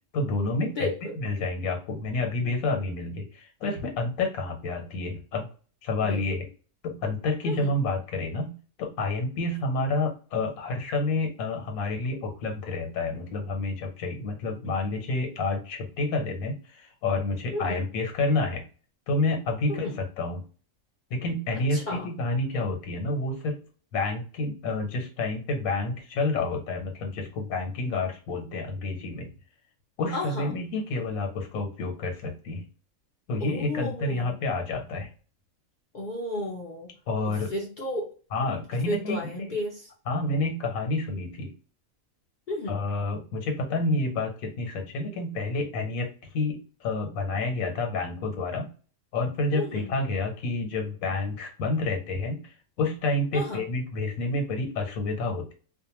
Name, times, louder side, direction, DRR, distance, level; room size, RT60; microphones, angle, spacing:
voice 1, 0.1-0.9 1.2-5.5 5.8-6.4 6.8-18.6 19.1-20.4 21.1-23.6 23.9-29.3 30.0-32.6 33.3-35.1 37.1-37.5 38.3-39.6 40.1-41.5 42.7-46.1 46.3-48.7 49.1-55.5, left 2 dB, 85° left, 3 dB, 1.2 m, -29 dB
voice 2, 0.8-1.2 6.0-6.2 7.4-7.7 17.5-17.8 19.7-20.0 21.7-22.1 30.1-30.6 33.4-34.4 35.9-36.9 37.3-38.1 38.9-39.9 42.5-42.8 49.5-49.9 53.3-53.7, left 1 dB, 55° left, -1 dB, 0.6 m, -33 dB
2.5 x 2.2 x 2.9 m, 0.38 s
omnidirectional pair, 1.4 m